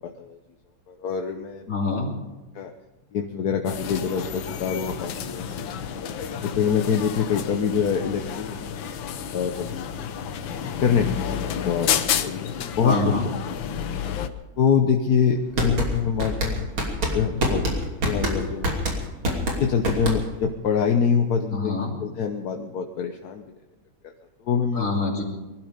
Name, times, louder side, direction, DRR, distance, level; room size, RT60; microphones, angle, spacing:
voice 1, 0.0-0.4 0.9-1.7 2.5-2.7 3.1-5.7 6.4-8.6 9.3-9.9 10.8-11.9 12.2-13.0 14.6-16.7 17.1-17.8 18.0-18.8 19.6-23.4 24.0-24.1 24.4-25.0, left 6 dB, 55° left, 4 dB, 1.3 m, -25 dB
voice 2, 1.7-2.1 12.8-13.3 21.5-21.9 24.7-25.2, left 3 dB, 40° left, -1 dB, 3.3 m, -25 dB
sound 1, 3.7-14.3, left 8 dB, 75° left, 1.6 m, -30 dB
sound 2, 15.3-20.5, right 1 dB, 80° right, 3.7 m, -25 dB
22.5 x 12.5 x 5.2 m, 1.1 s
omnidirectional pair, 2.2 m